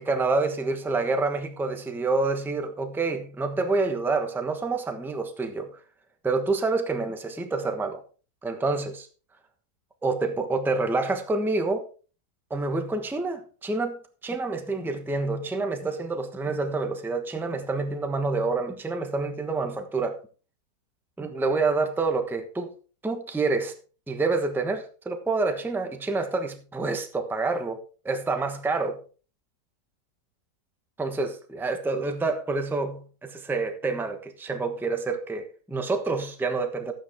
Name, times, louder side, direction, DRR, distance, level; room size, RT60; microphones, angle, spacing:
voice 1, 0.0-5.7 6.2-8.0 8.4-9.1 10.0-11.8 12.5-14.0 14.2-20.2 21.2-22.7 23.0-23.8 24.1-27.8 28.0-29.0 31.0-36.9, right 3 dB, ahead, 0.9 m, -27 dB
13.0 x 8.7 x 3.6 m
omnidirectional pair, 1.8 m